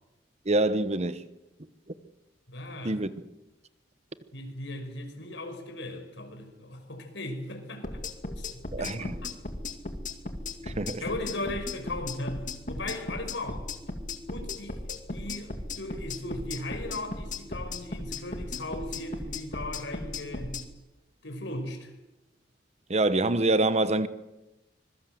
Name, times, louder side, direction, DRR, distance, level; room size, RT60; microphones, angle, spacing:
voice 1, 0.5-1.2 2.8-3.1 8.7-9.1 10.8-11.0 22.9-24.1, right 2 dB, 35° right, 1.1 m, -25 dB
voice 2, 2.5-3.0 4.3-8.0 8.4-9.3 11.0-13.7 14.3-20.6 21.2-21.9, left 1 dB, 80° left, 5.3 m, -37 dB
sound 1, 7.8-20.6, left 2 dB, 45° left, 2.4 m, -36 dB
25.5 x 21.5 x 7.8 m
head